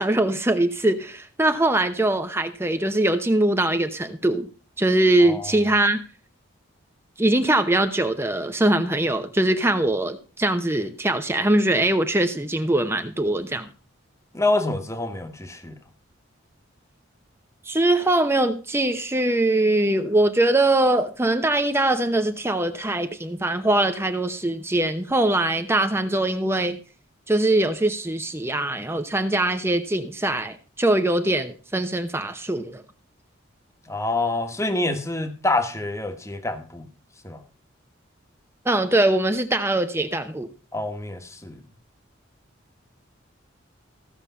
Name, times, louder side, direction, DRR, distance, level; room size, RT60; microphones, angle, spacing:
voice 1, 0.0-4.5 4.8-6.0 7.2-13.7 17.7-26.8 27.3-32.8 38.6-40.5, right 1 dB, 10° right, 0.8 m, -22 dB
voice 2, 14.3-15.8 33.9-36.9 37.2-37.4 40.7-41.6, left 2 dB, 15° left, 1.4 m, -26 dB
15.5 x 6.8 x 5.6 m
head